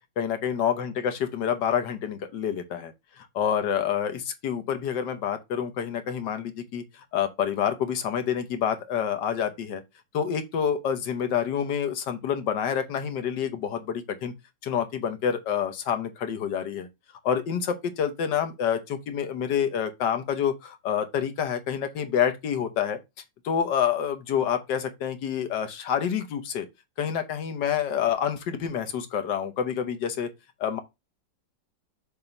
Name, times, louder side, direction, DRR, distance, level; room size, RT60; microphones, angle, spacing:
voice 1, 0.2-2.9 3.2-9.8 10.1-14.3 14.6-16.9 17.2-23.0 23.4-26.7 27.0-30.3 30.6-30.8, left 8 dB, 70° left, 1.5 m, -28 dB
6.9 x 2.9 x 5.2 m
omnidirectional pair, 2.0 m